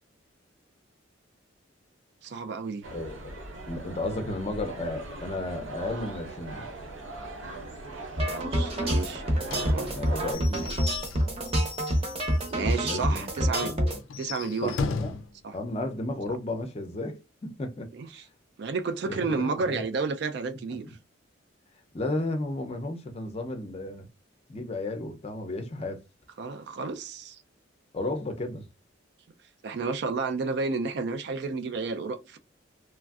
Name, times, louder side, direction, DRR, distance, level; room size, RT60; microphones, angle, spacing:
voice 1, 2.2-2.8 8.3-9.9 10.6-10.8 12.5-13.7 14.2-14.8 15.4-15.5 17.9-18.2 18.6-20.9 26.4-27.4 29.6-32.4, right 4 dB, 55° right, 0.3 m, -31 dB
sound 1, 2.8-10.3, right 2 dB, 75° right, 0.7 m, -40 dB
voice 2, 2.9-6.7 9.9-10.7 12.8-14.0 14.6-15.1 15.5-17.9 19.0-19.8 20.7-20.8 21.9-24.1 24.5-26.0 27.9-28.7, left 2 dB, 30° left, 0.5 m, -34 dB
sound 2, 8.2-14.0, equal, 30° right, 0.7 m, -27 dB
Slam / Squeak / Wood, 9.5-12.7 13.0-13.1 13.4-13.5 14.0-15.3, left 4 dB, 90° left, 0.4 m, -36 dB
3.1 x 2.5 x 2.3 m
head